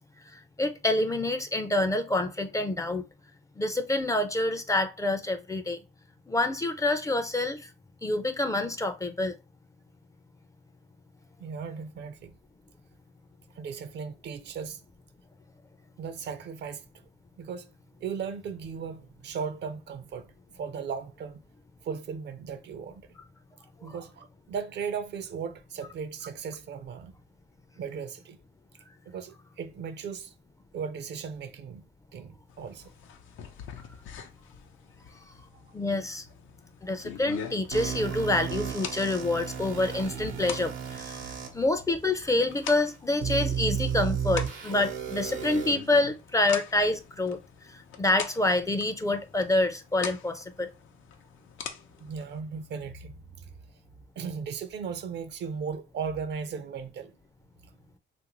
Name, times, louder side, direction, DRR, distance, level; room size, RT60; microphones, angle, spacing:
voice 1, 0.6-3.0 3.6-5.8 6.3-7.7 8.0-9.4 35.7-36.2 36.8-41.3 41.5-47.4 48.0-50.7, left 2 dB, 15° left, 0.4 m, -27 dB
voice 2, 11.4-12.4 13.6-14.8 16.0-16.9 17.4-17.7 18.0-21.4 21.8-23.1 23.8-27.1 27.8-28.4 29.1-30.3 30.7-31.9 32.1-32.9 35.5-35.7 52.0-53.5 54.2-57.1, right 6 dB, 60° right, 0.5 m, -37 dB
sound 1, 32.5-52.4, left 7 dB, 80° left, 0.6 m, -44 dB
sound 2, 37.7-41.5 42.2-42.3 43.2-45.7, right 8 dB, 85° right, 0.8 m, -33 dB
3.1 x 2.5 x 2.9 m
cardioid pair, 90°, 20 cm